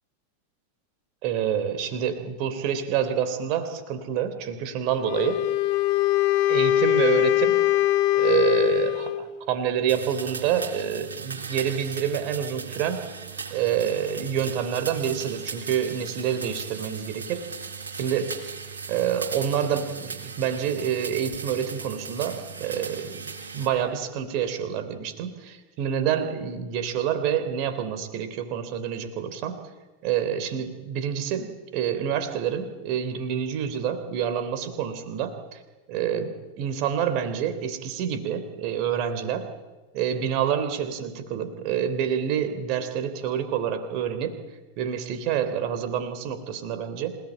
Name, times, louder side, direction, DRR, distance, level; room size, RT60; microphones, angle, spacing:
voice 1, 1.2-5.4 6.5-7.6 8.1-13.0 13.5-17.4 18.0-18.3 18.9-29.6 30.0-35.6 35.9-39.4 39.9-44.4 44.8-47.2, right 9 dB, 40° right, 9 dB, 3.3 m, -27 dB
Wind instrument woodwind instrument, 5.0-9.3, left 15 dB, 45° left, 1.4 m, -22 dB
sound 1, 9.9-23.7, right 5 dB, 70° right, 4.3 m, -37 dB
27.0 x 18.0 x 8.9 m, 1.2 s
figure-of-eight pair, 90°, 0 cm